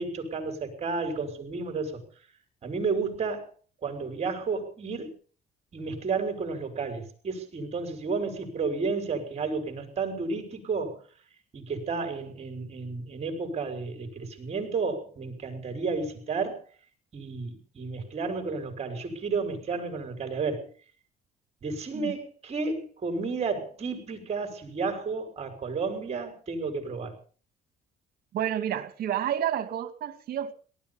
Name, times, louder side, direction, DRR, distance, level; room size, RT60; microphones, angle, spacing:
voice 1, 0.0-2.1 2.6-3.5 3.8-5.1 5.7-11.0 11.5-16.6 17.1-20.7 21.6-27.1, right 4 dB, 40° right, 5 dB, 6.0 m, -32 dB
voice 2, 28.3-30.5, right 10 dB, 65° right, 10 dB, 2.4 m, -30 dB
18.5 x 13.0 x 5.7 m, 0.41 s
cardioid pair, 110°, 17 cm